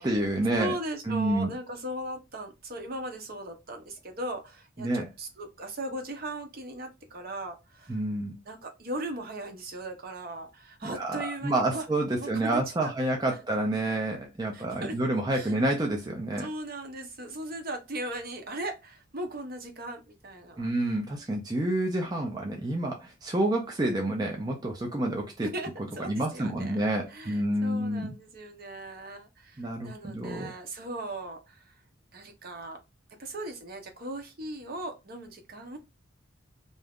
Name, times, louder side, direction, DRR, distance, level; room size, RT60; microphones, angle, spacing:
voice 1, 0.0-0.7 1.1-1.5 4.8-5.1 7.9-8.3 10.8-16.5 20.6-25.5 26.1-28.1 29.6-30.5, right 1 dB, 20° right, 0.5 m, -28 dB
voice 2, 0.6-8.0 8.5-11.9 12.2-13.1 14.5-15.0 15.3-15.7 16.4-20.7 22.2-22.6 25.4-26.8 27.1-31.7 32.1-32.8 33.2-35.8, right 1 dB, 50° right, 0.8 m, -38 dB
2.7 x 2.4 x 3.4 m
head